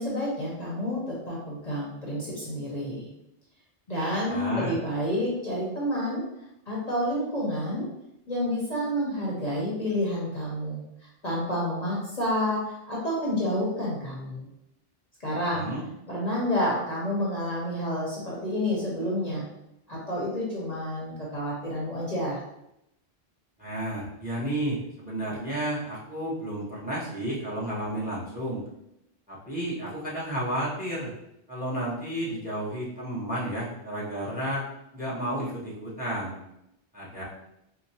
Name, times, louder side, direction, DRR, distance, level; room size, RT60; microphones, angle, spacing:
voice 1, 0.0-3.1 3.9-6.2 6.7-7.9 8.3-10.8 11.2-14.5 15.2-15.7 16.1-19.4 19.9-22.4, equal, 40° left, -6 dB, 0.9 m, -29 dB
voice 2, 4.2-4.7 15.5-15.8 23.6-28.6 29.3-31.1 31.5-34.7 34.9-36.3 36.9-37.2, right 1 dB, 10° right, -6 dB, 0.8 m, -32 dB
4.7 x 2.1 x 2.7 m, 0.82 s
omnidirectional pair, 1.2 m